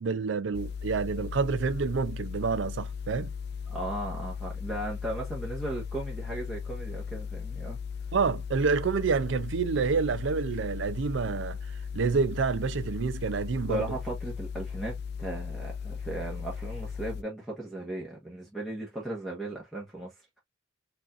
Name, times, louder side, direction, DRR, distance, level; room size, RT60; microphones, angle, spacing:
voice 1, 0.0-3.3 8.1-11.6 11.9-13.8, right 5 dB, 65° right, 0.4 m, -28 dB
sound 1, 0.5-17.2, left 6 dB, 55° left, 0.4 m, -37 dB
voice 2, 3.7-7.8 13.7-20.4, right 1 dB, ahead, 1.1 m, -36 dB
4.9 x 2.5 x 2.4 m
head